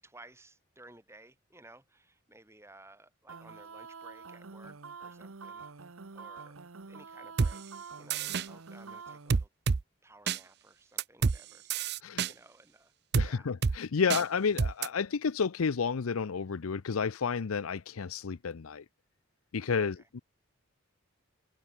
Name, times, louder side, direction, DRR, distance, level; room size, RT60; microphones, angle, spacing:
voice 1, 0.0-6.6 6.9-7.6 8.0-9.5 10.0-13.5 14.0-14.2 20.0-20.1, right 2 dB, 10° right, 6.2 m, -57 dB
sound 1, 3.3-9.4, right 4 dB, 80° right, 1.1 m, -47 dB
sound 2, 7.4-7.5 8.1-8.5 9.3-9.8 10.3-10.4 11.0-11.4 11.7-12.3 13.1-13.3 13.6-13.8 14.1-14.2 14.6-14.9, right 5 dB, 50° right, 0.5 m, -27 dB
voice 2, 13.2-18.8 19.5-20.2, left 5 dB, 85° left, 0.6 m, -31 dB
head